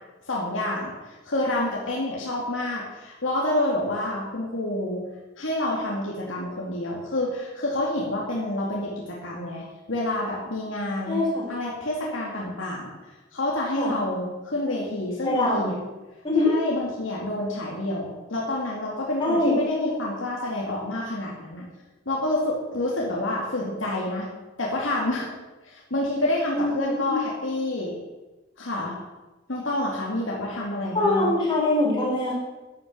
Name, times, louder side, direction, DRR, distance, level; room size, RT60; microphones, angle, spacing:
voice 1, 0.3-5.0 5.4-11.2 11.5-13.0 13.3-15.7 16.5-21.7 22.1-24.3 24.6-25.3 25.6-28.0 28.6-29.0 29.5-31.3, left 1 dB, 80° left, -3 dB, 2.4 m, -28 dB
voice 2, 11.1-11.5 13.8-14.0 15.2-15.8 16.2-16.5 19.2-19.6 26.5-26.7 27.0-27.2 30.9-32.3, left 2 dB, 25° left, -5 dB, 4.9 m, -23 dB
10.5 x 10.5 x 6.2 m, 1.1 s
head